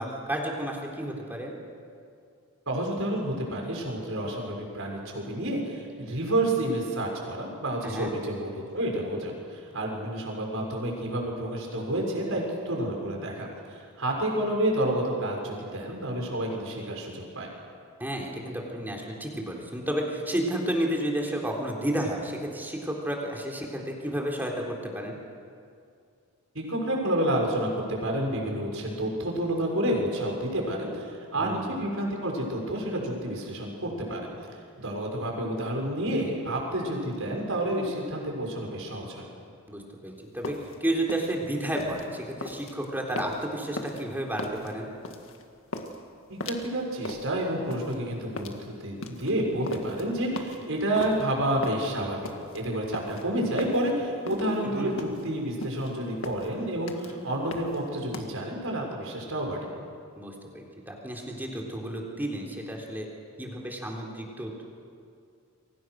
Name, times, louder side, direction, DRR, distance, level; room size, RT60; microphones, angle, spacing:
voice 1, 0.0-1.5 7.8-8.1 18.0-25.2 31.4-31.7 39.7-44.9 54.6-54.9 60.2-63.1 63.4-64.7, right 1 dB, 10° right, 0 dB, 3.7 m, -32 dB
voice 2, 2.7-17.5 26.5-34.3 34.8-39.2 46.3-59.7, right 1 dB, 65° right, 0 dB, 6.3 m, -29 dB
sound 1, 40.2-58.3, left 2 dB, 60° left, 2.0 m, -39 dB
29.0 x 24.0 x 6.5 m, 2.4 s
head